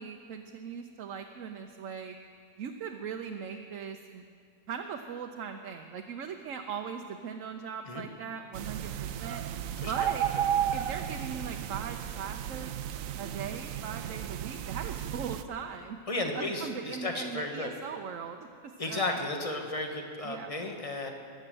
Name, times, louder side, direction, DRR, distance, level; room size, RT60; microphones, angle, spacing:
voice 1, 0.0-2.1 2.6-4.2 4.7-9.4 9.9-10.3 10.7-12.7 13.2-16.0 16.3-18.5 18.9-19.0 20.2-20.5, right 6 dB, 75° right, 4 dB, 1.1 m, -39 dB
sound 1, 8.5-15.4, right 10 dB, 90° right, 1.0 m, -33 dB
voice 2, 16.1-17.7 18.8-21.1, left 2 dB, 25° left, 3 dB, 1.4 m, -34 dB
20.5 x 8.0 x 7.6 m, 2.3 s
omnidirectional pair, 1.4 m